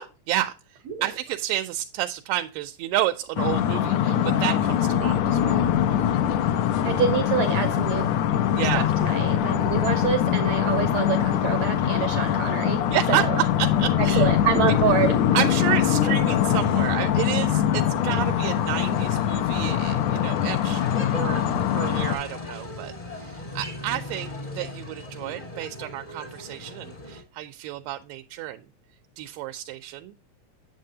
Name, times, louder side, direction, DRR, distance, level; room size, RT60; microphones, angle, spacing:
voice 1, 0.0-5.7 8.5-8.9 12.9-14.3 14.6-14.7 15.3-20.8 21.1-21.5 21.7-28.6 29.2-30.1, right 14 dB, 90° right, 6 dB, 2.3 m, -30 dB
sound 1, 3.4-22.2, left 10 dB, 85° left, 1.6 m, -23 dB
sound 2, 4.6-20.1, left 5 dB, 65° left, 2.0 m, -38 dB
voice 2, 6.8-8.1 8.7-12.8 13.1-13.4 14.2-15.2, right 7 dB, 70° right, 6 dB, 1.7 m, -26 dB
sound 3, 17.9-27.2, left 2 dB, 25° left, 0.8 m, -38 dB
7.8 x 7.5 x 2.7 m, 0.32 s
omnidirectional pair, 3.9 m